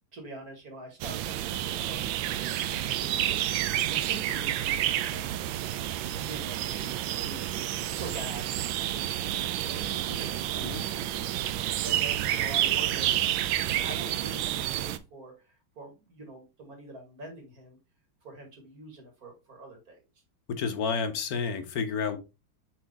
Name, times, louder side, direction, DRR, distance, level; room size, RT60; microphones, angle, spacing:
voice 1, 0.1-5.5 6.0-7.4 7.8-11.2 11.8-17.8 18.2-20.0, right 1 dB, 45° right, 2 dB, 2.2 m, -45 dB
sound 1, 1.0-15.0, right 12 dB, 75° right, 1.2 m, -29 dB
voice 2, 20.5-22.2, left 5 dB, 55° left, 7 dB, 1.1 m, -30 dB
7.6 x 3.7 x 3.5 m, 0.27 s
omnidirectional pair, 2.3 m